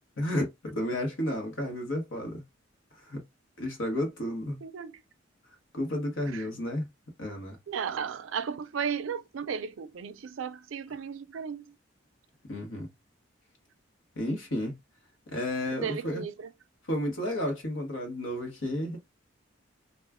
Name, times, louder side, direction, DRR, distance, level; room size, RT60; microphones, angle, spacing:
voice 1, 0.2-2.4 3.0-3.2 3.6-4.6 5.7-6.9 7.2-7.6 12.4-12.9 14.2-14.7 15.3-16.2 16.9-19.0, left 1 dB, 85° left, 1.1 m, -32 dB
voice 2, 4.6-5.0 6.3-6.5 7.7-11.8 15.8-16.5, right 6 dB, 80° right, 0.4 m, -35 dB
2.4 x 2.2 x 3.4 m
head